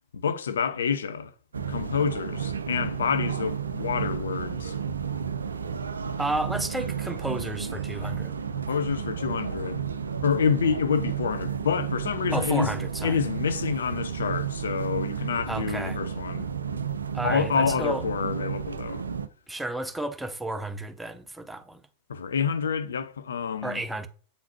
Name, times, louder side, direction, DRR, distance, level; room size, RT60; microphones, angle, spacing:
voice 1, 0.1-1.3 1.7-4.7 8.5-9.8 10.2-12.7 13.0-16.5 17.2-19.0 22.1-23.8, left 6 dB, 65° left, 0.5 m, -28 dB
sound 1, 1.5-19.3, right 7 dB, 75° right, 0.4 m, -32 dB
voice 2, 6.2-8.3 12.3-13.2 15.5-16.0 17.1-18.0 19.5-21.8 23.6-24.1, right 1 dB, 5° right, 0.6 m, -32 dB
8.4 x 3.9 x 2.9 m
figure-of-eight pair, 90°, 0 cm